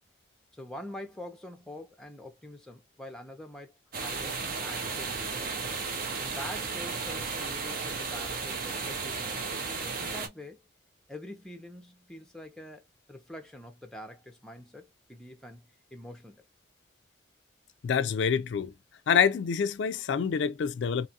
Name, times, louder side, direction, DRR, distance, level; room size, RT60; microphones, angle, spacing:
voice 1, 0.5-5.5 6.2-9.5 9.8-10.6 11.1-16.4, left 1 dB, 5° left, 0.6 m, -45 dB
sound 1, 3.9-10.3, right 4 dB, 50° right, 0.6 m, -34 dB
voice 2, 17.8-18.7 19.1-21.1, left 7 dB, 70° left, 0.3 m, -26 dB
2.9 x 2.3 x 2.7 m
head